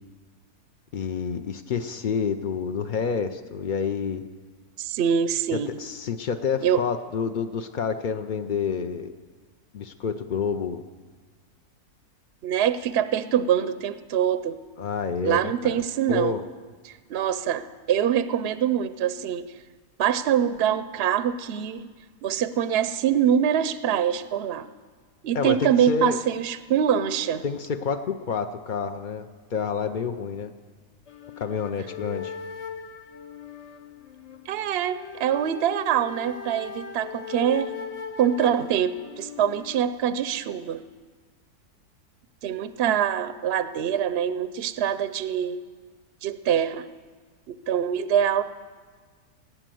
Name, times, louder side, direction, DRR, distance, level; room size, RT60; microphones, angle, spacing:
voice 1, 0.9-4.2 5.8-9.1 9.7-10.8 14.8-15.8 16.1-16.4 25.3-26.2 27.4-30.5 31.4-32.3, left 6 dB, 85° left, 7 dB, 0.4 m, -28 dB
voice 2, 4.8-5.7 6.6-6.8 12.4-14.6 15.2-16.3 16.9-19.5 20.0-21.9 22.2-24.7 25.2-27.4 34.5-37.7 38.2-40.8 42.4-45.6 46.2-46.9 47.5-48.4, right 9 dB, 65° right, 13 dB, 0.6 m, -24 dB
sound 1, 31.1-39.9, left 7 dB, 40° left, 0.5 m, -39 dB
18.5 x 8.9 x 7.7 m, 1.5 s
omnidirectional pair, 1.6 m